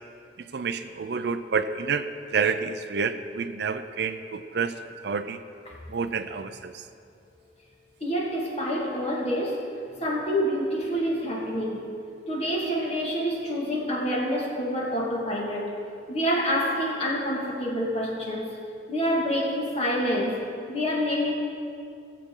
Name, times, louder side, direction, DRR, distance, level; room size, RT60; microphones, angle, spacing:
voice 1, 0.5-2.1 2.3-5.4 5.9-6.8, right 5 dB, 60° right, 10 dB, 0.5 m, -29 dB
voice 2, 8.0-9.6 10.0-11.8 12.3-15.7 16.1-18.5 18.9-20.4 20.7-21.3, equal, 35° left, -2 dB, 1.9 m, -27 dB
18.5 x 7.5 x 3.8 m, 2.4 s
head